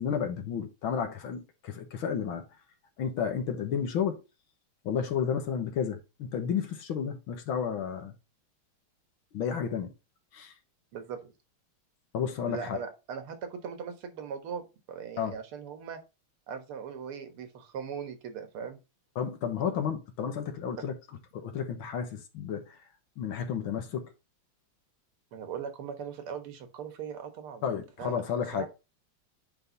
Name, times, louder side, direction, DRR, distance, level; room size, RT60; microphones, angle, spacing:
voice 1, 0.0-2.4 3.0-4.2 4.8-8.1 9.3-9.9 10.3-10.5 12.1-12.8 15.2-15.3 19.2-21.0 21.3-22.8 23.2-24.1 27.6-28.7, left 7 dB, 70° left, 2.0 m, -32 dB
voice 2, 10.9-11.3 12.5-16.0 16.5-18.8 20.8-20.9 25.3-28.2 28.5-28.7, right 7 dB, 80° right, 2.2 m, -39 dB
9.6 x 3.6 x 4.0 m
omnidirectional pair, 2.4 m